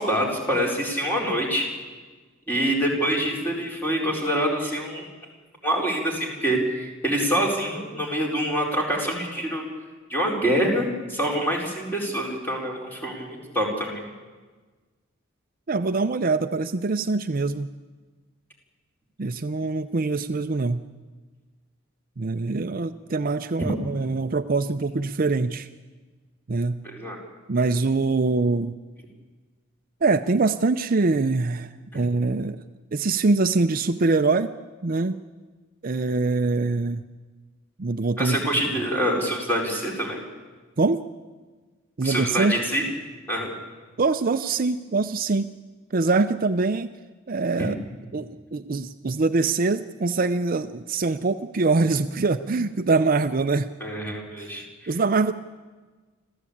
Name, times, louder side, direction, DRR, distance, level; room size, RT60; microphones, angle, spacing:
voice 1, 0.0-1.7 2.5-5.0 5.6-9.6 10.1-14.0 26.8-27.2 31.9-32.0 38.2-40.2 42.0-42.8 43.3-43.5 53.8-54.6, equal, 10° left, -1 dB, 4.4 m, -25 dB
voice 2, 15.7-17.7 19.2-20.8 22.2-25.7 26.5-26.8 27.5-28.7 30.0-32.6 32.9-34.5 34.8-35.2 35.8-37.0 37.8-38.4 40.8-41.0 42.0-42.6 44.0-45.5 45.9-46.9 47.3-47.8 48.1-53.7 54.4-55.3, right 3 dB, 45° right, 9 dB, 0.6 m, -24 dB
26.0 x 15.0 x 8.6 m, 1.4 s
head